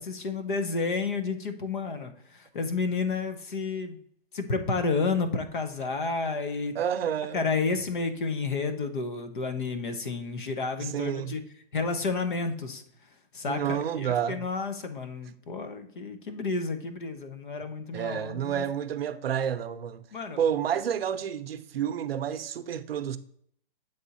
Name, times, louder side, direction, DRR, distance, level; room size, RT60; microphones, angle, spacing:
voice 1, 0.0-4.0 4.3-6.7 7.3-11.4 11.7-12.8 13.3-18.6 20.1-20.4, left 4 dB, 55° left, 0.9 m, -31 dB
voice 2, 6.7-7.5 10.8-11.4 13.5-14.5 17.9-20.1 20.4-23.2, right 9 dB, 70° right, 0.6 m, -30 dB
7.9 x 3.5 x 4.1 m
hypercardioid pair, 180°, 30 cm